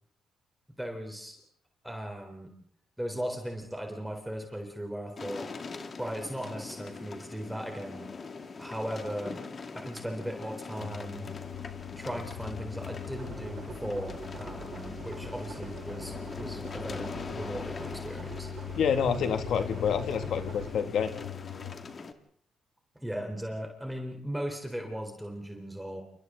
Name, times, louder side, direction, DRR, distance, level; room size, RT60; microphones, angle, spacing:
voice 1, 0.8-1.4 1.8-2.5 3.0-5.5 6.0-8.1 8.6-9.4 9.7-11.3 11.9-18.5 23.0-26.0, equal, 5° right, 2 dB, 3.9 m, -37 dB
sound 1, 5.2-22.1, left 4 dB, 40° left, 2.3 m, -42 dB
sound 2, 10.8-21.7, left 10 dB, 90° left, 2.3 m, -41 dB
sound 3, 13.1-20.7, right 5 dB, 45° right, 4.1 m, -45 dB
voice 2, 18.8-21.1, left 7 dB, 70° left, 7 dB, 2.2 m, -28 dB
29.5 x 28.0 x 3.9 m, 0.64 s
cardioid pair, 90°, 0 cm